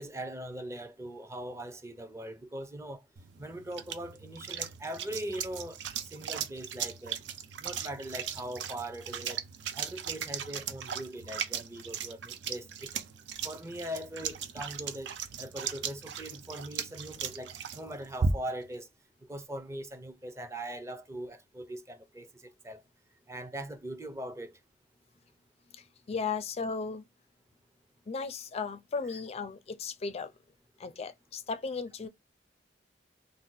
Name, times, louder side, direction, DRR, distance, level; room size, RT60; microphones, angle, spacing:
voice 1, 0.0-3.0 3.4-7.2 7.6-9.4 9.7-13.0 13.4-18.9 19.2-22.8 23.3-24.6, right 1 dB, 15° right, 0.5 m, -41 dB
sound 1, 3.2-18.7, right 6 dB, 70° right, 0.4 m, -37 dB
voice 2, 26.1-27.0 28.1-30.3 30.8-32.1, left 4 dB, 35° left, 0.4 m, -35 dB
2.7 x 2.1 x 3.8 m
head